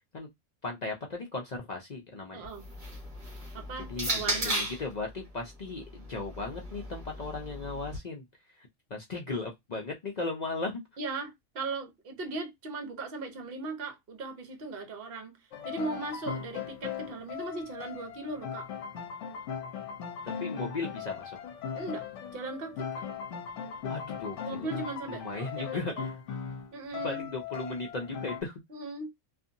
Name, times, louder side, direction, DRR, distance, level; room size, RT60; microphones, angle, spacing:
voice 1, 0.6-2.5 3.9-8.2 8.6-10.8 20.4-21.4 23.8-24.7 25.1-26.1 27.0-28.6, left 3 dB, 55° left, 0.4 m, -36 dB
voice 2, 2.3-2.7 3.5-4.7 11.0-15.4 15.6-18.7 21.7-22.0 22.3-23.0 24.4-26.1 26.7-27.3 28.7-29.1, right 3 dB, 50° right, 0.9 m, -38 dB
sound 1, 2.4-4.9 5.9-8.0, right 1 dB, 30° right, 1.2 m, -35 dB
sound 2, 15.5-28.4, left 7 dB, 70° left, 0.9 m, -39 dB
2.7 x 2.5 x 2.5 m
omnidirectional pair, 1.4 m